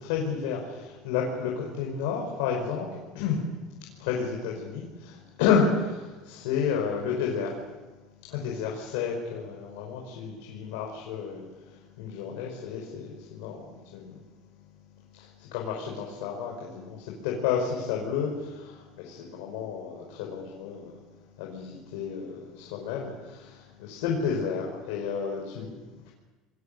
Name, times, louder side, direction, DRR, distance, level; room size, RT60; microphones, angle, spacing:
voice 1, 0.0-3.4 3.9-7.6 8.3-14.2 15.1-21.0 21.4-26.1, left 6 dB, 85° left, -1 dB, 5.4 m, -31 dB
30.0 x 21.5 x 6.9 m, 1.2 s
cardioid pair, 165°, 0 cm